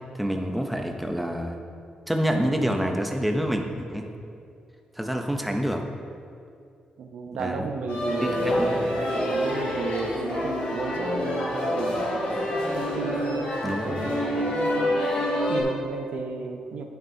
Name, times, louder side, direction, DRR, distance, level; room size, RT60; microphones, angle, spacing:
voice 1, 0.1-1.6 2.1-4.1 5.0-5.8 7.4-7.7 8.2-8.8 13.6-14.0, equal, ahead, 3 dB, 0.6 m, -27 dB
voice 2, 7.0-8.7 9.3-12.2 12.7-15.0 15.5-16.8, right 4 dB, 80° right, 5 dB, 0.7 m, -34 dB
sound 1, 7.9-15.6, left 1 dB, 60° left, 2.1 m, -27 dB
9.4 x 9.0 x 2.7 m, 2.5 s
wide cardioid pair, 155°, 2 cm